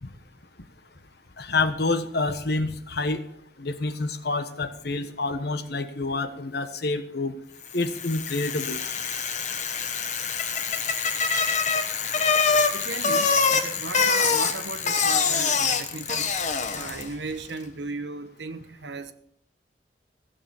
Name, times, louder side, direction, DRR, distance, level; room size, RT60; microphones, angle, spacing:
voice 1, 1.4-3.2 3.6-7.3 7.7-8.8, left 3 dB, 65° left, 1.2 m, -28 dB
Bicycle, 7.7-17.2, left 5 dB, 45° left, 1.2 m, -25 dB
voice 2, 12.7-16.4 16.7-19.1, right 3 dB, 75° right, 1.1 m, -36 dB
16.0 x 6.9 x 7.3 m
head